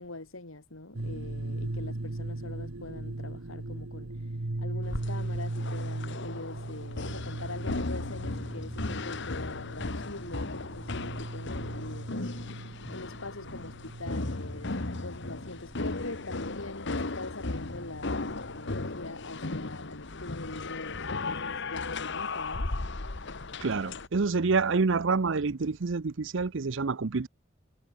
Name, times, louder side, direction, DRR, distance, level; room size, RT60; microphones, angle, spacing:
voice 1, 0.0-4.1 4.6-12.3 12.9-22.7, left 2 dB, 80° left, 2.7 m, -43 dB
sound 1, 0.9-19.2, right 2 dB, 80° right, 1.4 m, -39 dB
sound 2, 4.8-24.1, left 3 dB, 60° left, 1.5 m, -36 dB
voice 2, 23.6-27.3, right 4 dB, 65° right, 0.7 m, -27 dB
head